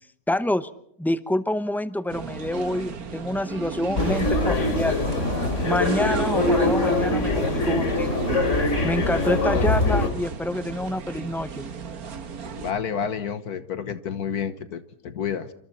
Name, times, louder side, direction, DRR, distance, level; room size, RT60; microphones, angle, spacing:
voice 1, 0.3-0.7 1.0-5.0 5.6-8.2 8.8-11.7, left 1 dB, 5° left, 13 dB, 0.3 m, -27 dB
sound 1, 2.1-12.7, right 5 dB, 65° right, 1.9 m, -36 dB
sound 2, 4.0-10.1, left 2 dB, 50° left, 3.2 m, -23 dB
voice 2, 12.6-15.5, left 7 dB, 70° left, 11 dB, 1.6 m, -30 dB
27.5 x 25.5 x 4.3 m, 0.73 s
omnidirectional pair, 1.7 m